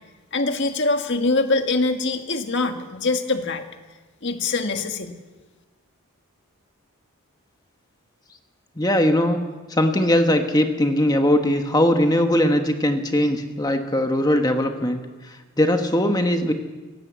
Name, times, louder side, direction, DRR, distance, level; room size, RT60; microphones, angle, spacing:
voice 1, 0.3-3.6 4.2-5.1, left 3 dB, 50° left, 6 dB, 1.9 m, -23 dB
voice 2, 8.8-9.4 9.7-16.5, left 1 dB, 15° left, 5 dB, 1.3 m, -20 dB
20.5 x 17.5 x 8.3 m, 1.3 s
head